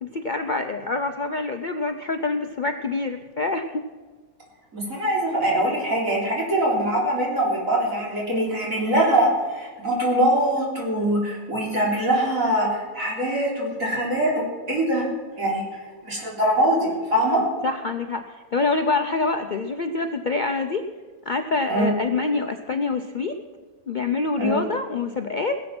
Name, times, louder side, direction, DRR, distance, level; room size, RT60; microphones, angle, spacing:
voice 1, 0.0-3.8 17.6-20.9 21.3-23.4 23.9-25.6, left 3 dB, 50° left, 7 dB, 0.6 m, -26 dB
voice 2, 4.7-15.1 15.4-15.6 16.0-17.4 21.7-21.9 24.4-24.6, right 1 dB, 65° right, -3 dB, 4.1 m, -23 dB
20.0 x 7.8 x 6.0 m, 1.4 s
omnidirectional pair, 1.5 m